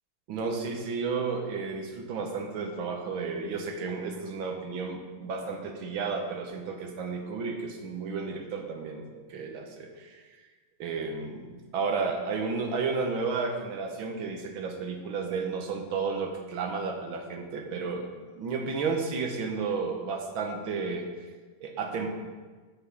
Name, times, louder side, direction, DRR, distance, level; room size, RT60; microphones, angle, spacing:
voice 1, 0.3-10.2 10.8-21.1 21.6-22.1, right 4 dB, 80° right, 3 dB, 1.9 m, -32 dB
8.1 x 7.1 x 5.6 m, 1.4 s
omnidirectional pair, 2.2 m